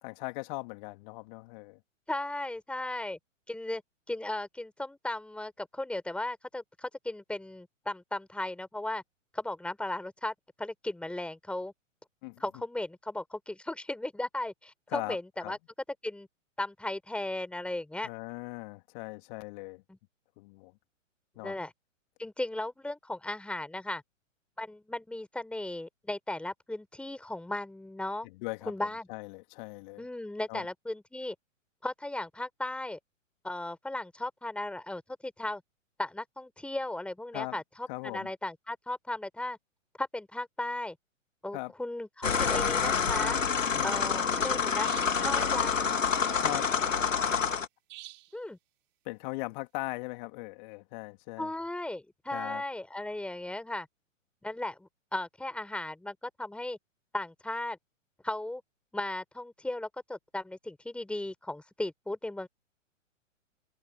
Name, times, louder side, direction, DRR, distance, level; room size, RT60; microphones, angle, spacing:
voice 1, 0.0-1.8 12.2-12.4 14.9-15.6 18.0-19.8 20.4-20.8 21.3-21.6 28.2-30.1 30.5-30.7 37.3-37.6 37.9-38.3 41.5-41.7 43.7-44.4 46.4-46.7 49.0-51.5 52.3-52.6, left 25 dB, 35° left, 2.9 m, -40 dB
voice 2, 2.1-3.2 3.5-3.8 4.1-9.0 9.3-11.7 12.4-15.2 15.5-15.6 16.0-16.3 16.6-18.1 19.9-20.0 21.4-21.7 22.2-24.0 24.6-28.3 28.7-29.1 30.0-31.3 31.8-33.0 33.4-35.6 36.0-39.6 40.0-41.0 41.4-43.4 43.8-44.9 45.2-46.0 48.3-48.6 51.4-53.9 54.4-56.8 57.1-57.8 58.2-58.6 58.9-62.5, left 1 dB, 5° left, 4.2 m, -36 dB
sound 1, 42.2-47.7, left 6 dB, 75° left, 2.4 m, -27 dB
sound 2, 44.8-45.3 47.9-48.4, right 20 dB, 30° right, 7.1 m, -47 dB
figure-of-eight pair, 115°, 39 cm